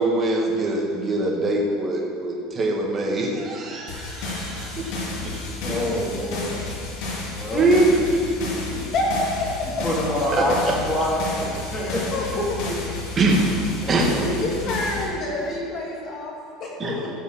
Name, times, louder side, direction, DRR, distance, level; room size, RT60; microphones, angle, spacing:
voice 1, 0.0-5.8 7.5-8.8 10.3-10.5 13.2-13.5 13.9-14.1 16.8-17.0, right 2 dB, 20° right, -1 dB, 1.6 m, -23 dB
sound 1, 3.9-15.0, left 3 dB, 65° left, 3.4 m, -31 dB
voice 2, 5.6-6.7 7.3-7.7 9.8-12.0 13.8-14.2, left 1 dB, 15° left, -6 dB, 2.8 m, -26 dB
voice 3, 8.9-9.8 11.7-12.7 14.1-16.3 16.6-17.1, left 2 dB, 35° left, -3 dB, 2.6 m, -28 dB
15.0 x 5.6 x 7.1 m, 2.5 s
cardioid pair, 165°, 0 cm